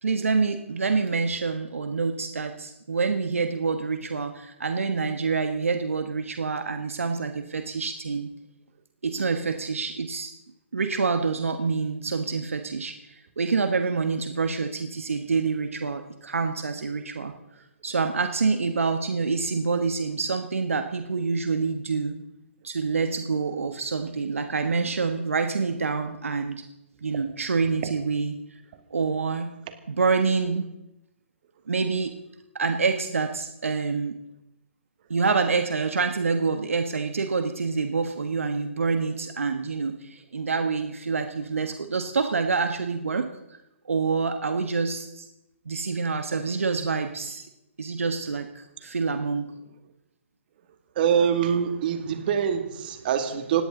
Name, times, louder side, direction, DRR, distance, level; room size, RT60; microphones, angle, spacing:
voice 1, 0.0-8.3 9.0-10.3 10.7-17.3 17.8-22.2 22.6-26.6 27.0-28.4 28.9-29.5 29.9-30.7 31.7-32.1 32.5-34.2 35.1-43.3 43.8-45.3 45.6-47.4 47.8-49.5, right 4 dB, 75° right, 7 dB, 1.4 m, -27 dB
voice 2, 51.0-53.6, right 8 dB, 45° right, 7 dB, 2.5 m, -24 dB
19.0 x 17.0 x 3.9 m, 0.90 s
figure-of-eight pair, 135°, 7 cm